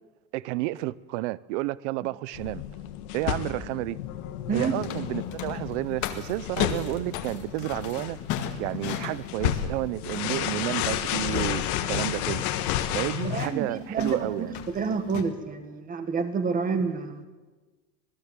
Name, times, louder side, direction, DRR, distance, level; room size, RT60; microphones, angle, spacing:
voice 1, 0.3-2.6 3.1-4.0 4.5-8.2 8.6-12.4 12.9-14.5, right 18 dB, 50° right, 0.7 m, -31 dB
sound 1, 2.3-13.5, left 12 dB, 65° left, 2.2 m, -32 dB
sound 2, 4.5-15.2, left 10 dB, 40° left, 2.2 m, -37 dB
voice 2, 13.2-17.2, right 5 dB, 15° right, 1.8 m, -29 dB
27.0 x 19.0 x 7.5 m
supercardioid pair, 165°, 47 cm